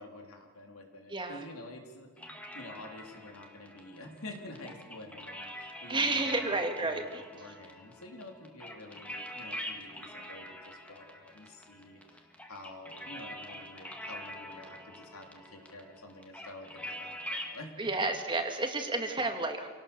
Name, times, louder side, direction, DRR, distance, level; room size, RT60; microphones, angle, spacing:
voice 1, 0.0-7.1 7.3-17.9, left 2 dB, 80° left, 2 dB, 3.5 m, -48 dB
voice 2, 1.1-1.4 5.9-7.2 17.8-19.7, right 2 dB, 25° right, 5 dB, 2.0 m, -31 dB
sound 1, 2.2-17.6, equal, 5° left, 2.0 m, -45 dB
26.5 x 18.5 x 6.9 m, 1.4 s
head